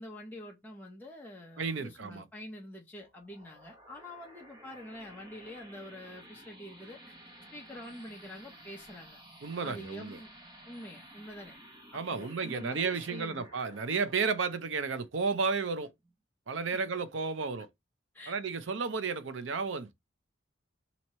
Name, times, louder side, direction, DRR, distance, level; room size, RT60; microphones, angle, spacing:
voice 1, 0.0-7.1 7.5-9.2 9.6-10.3 10.7-11.6 11.9-13.5 18.1-18.4, left 1 dB, 10° left, 0.7 m, -46 dB
voice 2, 1.6-2.2 9.4-10.2 11.9-15.9 16.5-17.7 18.3-19.9, right 5 dB, 65° right, 0.6 m, -32 dB
sound 1, 3.0-16.1, right 1 dB, 25° right, 0.8 m, -54 dB
3.0 x 2.8 x 4.1 m
head